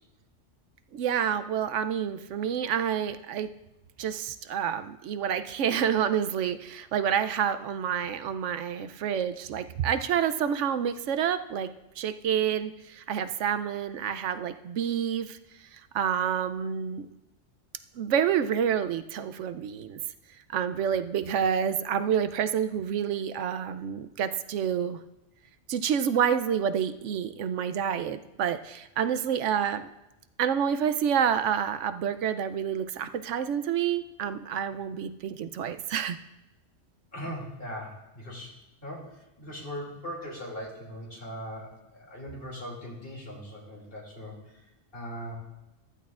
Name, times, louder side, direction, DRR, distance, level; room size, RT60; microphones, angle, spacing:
voice 1, 0.9-3.5 4.0-11.7 12.0-15.4 15.9-17.1 18.0-20.0 20.5-25.0 25.7-29.9 30.4-36.2, right 8 dB, 80° right, 10 dB, 0.9 m, -28 dB
voice 2, 37.1-38.5 38.8-44.4 44.9-45.4, equal, 50° left, -2 dB, 2.8 m, -39 dB
14.5 x 12.5 x 2.4 m, 0.93 s
omnidirectional pair, 1.2 m